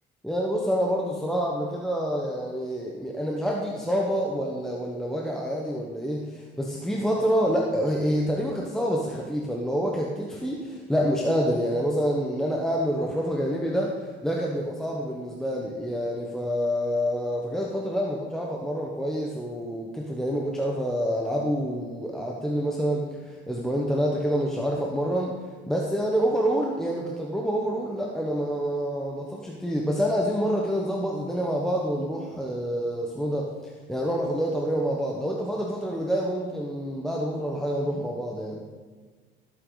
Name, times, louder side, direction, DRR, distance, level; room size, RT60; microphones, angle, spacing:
voice 1, 0.2-25.3 25.7-38.6, equal, ahead, -2 dB, 1.2 m, -27 dB
18.0 x 8.3 x 4.0 m, 1.5 s
cardioid pair, 125°, 20 cm